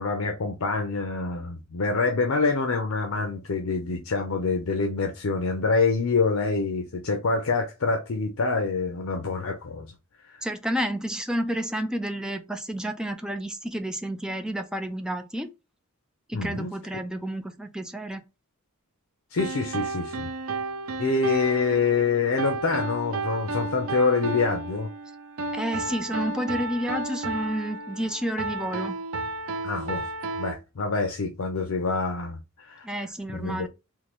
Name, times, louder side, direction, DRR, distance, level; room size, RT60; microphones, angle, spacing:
voice 1, 0.0-9.9 10.3-10.4 16.3-16.7 19.3-20.3 21.0-24.9 29.6-30.1 30.4-32.9 33.3-33.7, left 4 dB, 75° left, 0.6 m, -26 dB
voice 2, 10.4-15.5 16.3-18.2 25.5-29.0 32.8-33.7, equal, 5° right, 0.4 m, -30 dB
sound 1, 19.4-30.5, right 3 dB, 75° right, 0.5 m, -32 dB
3.7 x 2.6 x 3.0 m
head